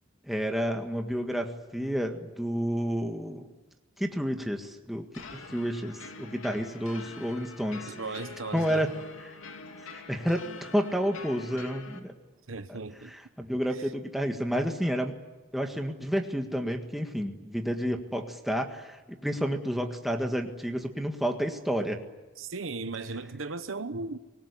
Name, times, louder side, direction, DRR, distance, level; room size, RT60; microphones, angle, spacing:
voice 1, 0.3-3.5 4.0-5.1 5.3-7.9 8.5-8.9 9.2-9.4 9.9-12.1 12.7-12.8 13.0-15.1 15.5-22.0, equal, ahead, 1.7 m, -30 dB
sound 1, 5.1-12.0, left 4 dB, 85° left, 2.7 m, -45 dB
voice 2, 7.9-8.9 12.5-13.1 22.4-24.2, right 3 dB, 80° right, 1.1 m, -36 dB
25.0 x 20.5 x 10.0 m
head